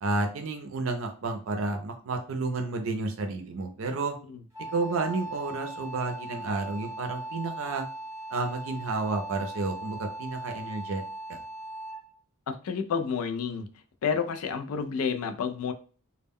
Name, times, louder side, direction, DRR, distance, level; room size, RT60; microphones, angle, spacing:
voice 1, 0.0-4.1 4.7-7.8 8.3-11.0 11.3-11.4, right 3 dB, 65° right, 4 dB, 0.4 m, -31 dB
Wind instrument woodwind instrument, 4.5-12.2, right 1 dB, 15° right, 0.6 m, -39 dB
voice 2, 12.5-13.7 14.0-15.7, left 6 dB, 85° left, 8 dB, 0.4 m, -30 dB
2.1 x 2.1 x 3.5 m, 0.39 s
head